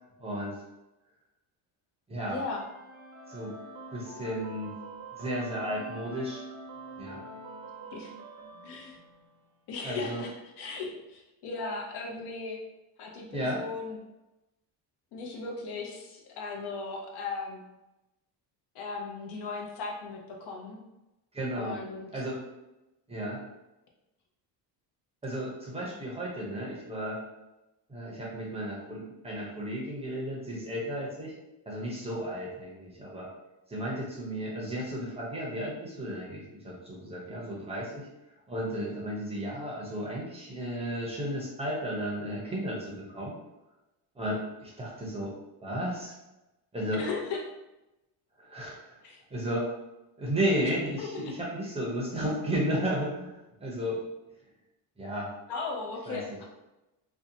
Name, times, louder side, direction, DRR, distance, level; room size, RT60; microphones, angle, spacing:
voice 1, 0.2-0.6 2.1-2.4 3.3-3.5 3.9-4.7 5.2-6.4 7.0-7.2 9.8-10.3 13.3-13.6 21.3-21.7 22.1-22.4 23.1-23.4 25.2-27.2 27.9-31.3 31.7-33.3 33.7-38.1 38.5-43.3 44.2-45.3 45.6-46.1 46.7-47.0 48.4-49.0 49.3-49.7 50.2-54.0 55.0-55.3 56.1-56.2, equal, 15° right, -4 dB, 0.5 m, -33 dB
voice 2, 2.3-2.6 7.9-8.1 8.6-9.0 9.7-12.6 13.0-14.0 15.1-17.6 18.7-20.8 21.5-22.2 25.8-25.9 46.9-47.4 49.0-49.2 51.0-51.3 55.5-56.5, left 4 dB, 65° left, 0 dB, 0.7 m, -37 dB
sound 1, 2.6-9.5, right 3 dB, 85° right, 0.7 m, -46 dB
2.7 x 2.1 x 2.6 m, 0.97 s
cardioid pair, 130°, 42 cm